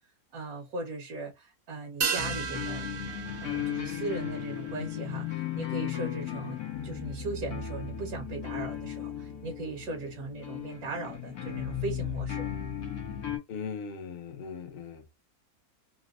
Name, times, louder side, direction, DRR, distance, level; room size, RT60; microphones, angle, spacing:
voice 1, 0.3-2.9 3.4-12.5, right 3 dB, 80° right, 1.5 m, -38 dB
sound 1, 2.0-6.7 7.0-7.1, right 6 dB, 60° right, 0.9 m, -36 dB
sound 2, 2.2-13.4, left 9 dB, 90° left, 1.5 m, -36 dB
voice 2, 13.5-15.1, left 6 dB, 50° left, 0.8 m, -39 dB
4.0 x 2.2 x 2.4 m
omnidirectional pair, 1.6 m